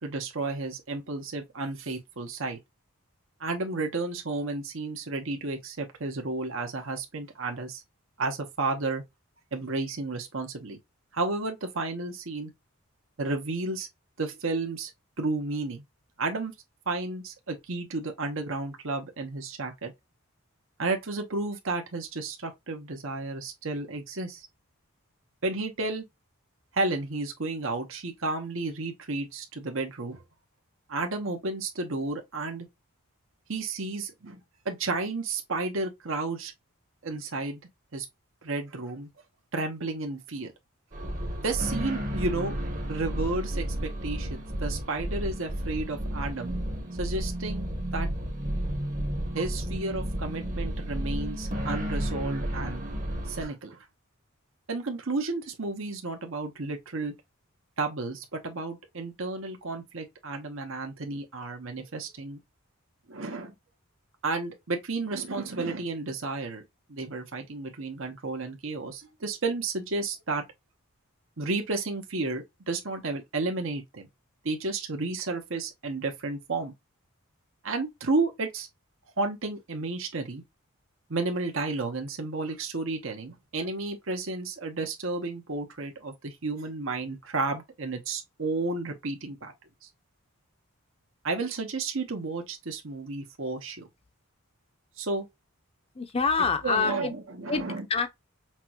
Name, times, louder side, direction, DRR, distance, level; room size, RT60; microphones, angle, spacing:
voice 1, 0.0-2.6 3.4-7.8 8.2-9.0 9.5-10.8 11.1-12.5 13.2-13.9 14.2-14.9 15.2-15.8 16.2-16.5 16.9-19.9 20.8-24.5 25.4-26.0 26.7-30.2 30.9-32.7 33.5-34.4 34.6-36.5 37.0-37.6 37.9-38.1 38.4-39.1 39.5-40.5 41.4-42.6 42.9-46.5 47.0-47.7 47.9-48.2 49.3-52.8 53.3-53.8 54.7-57.1 57.8-62.4 63.1-63.5 64.2-66.6 66.9-70.4 71.4-74.1 74.4-76.7 77.6-78.7 79.2-80.4 81.1-89.5 89.8-89.9 91.2-93.9 95.0-95.3 96.6-97.8, right 3 dB, 60° right, 1.0 m, -32 dB
sound 1, 40.9-53.4, equal, 40° right, 1.1 m, -32 dB
voice 2, 95.9-97.1 97.5-97.6 97.9-98.2, left 4 dB, 25° left, 0.7 m, -26 dB
5.9 x 2.3 x 2.9 m
head